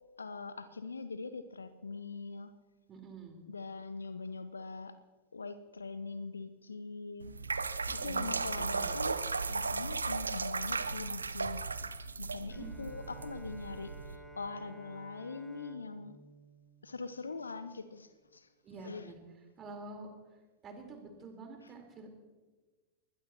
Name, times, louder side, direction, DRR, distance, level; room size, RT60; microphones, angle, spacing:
voice 1, 0.2-2.5 3.5-5.0 5.3-7.3 7.9-9.2 9.4-11.7 12.2-16.2 16.8-18.5 18.8-19.1, left 4 dB, 75° left, 13 dB, 0.8 m, -42 dB
voice 2, 2.9-3.4 7.9-8.9 12.5-12.9 18.6-19.2 19.6-20.1 20.6-22.1, right 3 dB, 25° right, 2 dB, 4.3 m, -48 dB
sound 1, 7.2-14.2, right 4 dB, 75° right, 0.8 m, -36 dB
Bowed string instrument, 12.5-17.8, right 2 dB, 5° right, 2.7 m, -53 dB
22.5 x 20.5 x 3.0 m, 1.3 s
figure-of-eight pair, 90°, 0 cm